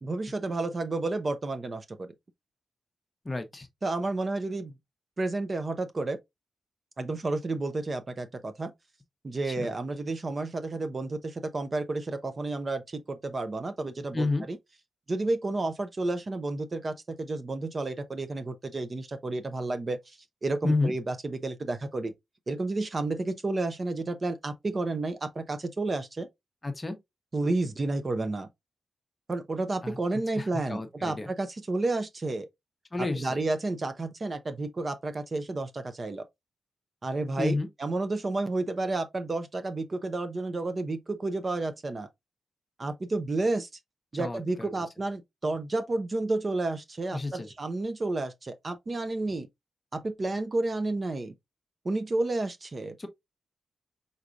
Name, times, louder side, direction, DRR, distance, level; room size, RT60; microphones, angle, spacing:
voice 1, 0.0-2.1 3.8-4.7 5.2-6.2 7.0-8.7 9.2-14.6 15.1-22.1 22.5-26.3 27.3-28.5 29.3-32.5 33.0-36.2 37.0-42.1 42.8-43.7 44.1-49.5 49.9-51.3 51.8-53.0, right 2 dB, 35° right, 0.6 m, -31 dB
voice 2, 3.2-3.7 9.4-9.7 14.1-14.5 20.6-20.9 26.6-27.0 29.8-30.0 30.3-31.3 32.9-33.4 37.4-37.7 44.1-44.9 47.1-47.5 53.0-53.1, left 2 dB, 20° left, 0.8 m, -30 dB
4.7 x 4.0 x 2.4 m
wide cardioid pair, 110°, 0 cm